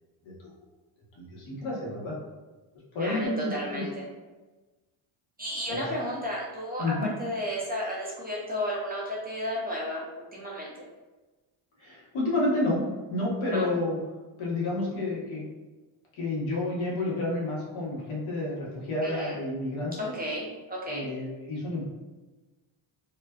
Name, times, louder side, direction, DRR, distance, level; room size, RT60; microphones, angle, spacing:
voice 1, 1.1-2.1 2.9-3.8 5.7-5.8 6.8-7.1 11.8-12.8 13.1-14.0 14.4-15.5 16.2-20.1 20.9-21.8, left 2 dB, 70° left, -5 dB, 1.0 m, -30 dB
voice 2, 3.0-4.1 5.4-6.9 7.2-10.0 10.3-10.7 13.5-13.7 19.0-19.4 20.0-21.1, equal, 20° right, -5 dB, 0.4 m, -33 dB
2.4 x 2.2 x 2.2 m, 1.2 s
cardioid pair, 115°, 49 cm